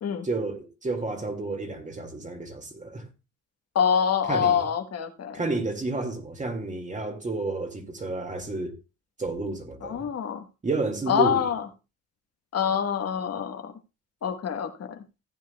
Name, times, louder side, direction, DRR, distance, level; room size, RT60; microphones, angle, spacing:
voice 1, 0.2-3.1 4.3-4.7 5.3-8.8 9.2-10.1 10.6-11.5, right 3 dB, 25° right, 2.0 m, -31 dB
voice 2, 3.7-5.4 9.8-10.4 11.1-11.6 12.5-13.7 14.2-15.0, left 7 dB, 55° left, 1.2 m, -25 dB
15.0 x 9.1 x 2.2 m
cardioid pair, 90°, 30 cm